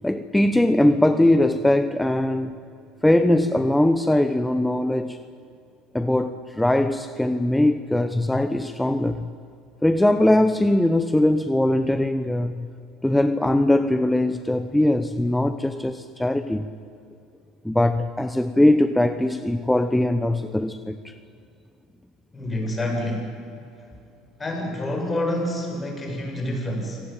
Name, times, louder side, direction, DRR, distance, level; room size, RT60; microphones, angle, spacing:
voice 1, 0.0-2.6 3.0-5.2 5.9-9.3 9.8-12.7 13.0-16.7 17.6-21.1, left 1 dB, 5° left, 10 dB, 1.0 m, -21 dB
voice 2, 22.3-23.4 24.4-27.0, left 1 dB, 20° left, 2 dB, 7.5 m, -27 dB
25.5 x 18.0 x 9.0 m, 2.5 s
supercardioid pair, 90°, 0 cm